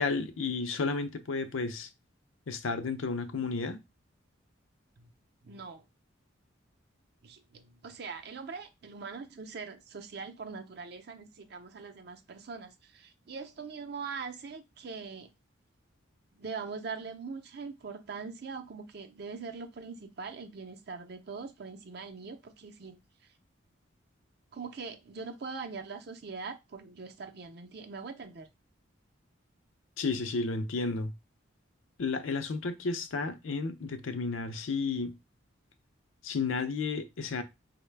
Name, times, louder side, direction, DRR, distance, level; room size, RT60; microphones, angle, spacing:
voice 1, 0.0-1.9 2.5-3.8 30.0-31.1 32.0-35.2 36.2-37.4, left 4 dB, 80° left, 0.5 m, -32 dB
voice 2, 5.4-5.8 7.2-15.3 16.3-23.3 24.5-28.5, right 5 dB, 50° right, 0.5 m, -42 dB
4.5 x 2.1 x 3.3 m
head